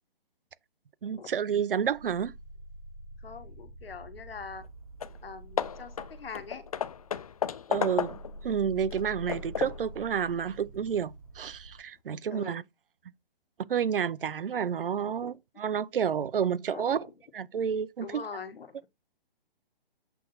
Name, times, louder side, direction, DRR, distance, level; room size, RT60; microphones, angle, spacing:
voice 1, 1.0-2.3 7.7-12.6 13.7-17.1 17.3-18.2, right 8 dB, 65° right, 0.8 m, -30 dB
sound 1, 1.8-7.4 7.8-11.8, right 1 dB, 30° right, 1.2 m, -47 dB
voice 2, 3.2-4.6 5.2-6.6 12.3-12.6 15.0-15.4 16.7-17.1 18.0-18.9, left 5 dB, 75° left, 1.6 m, -43 dB
Hammer / Wood, 4.6-4.7 5.0-5.2 5.6-8.4 8.9-9.9, left 8 dB, 40° left, 0.4 m, -34 dB
8.4 x 3.7 x 4.1 m
hypercardioid pair, 160°, 30 cm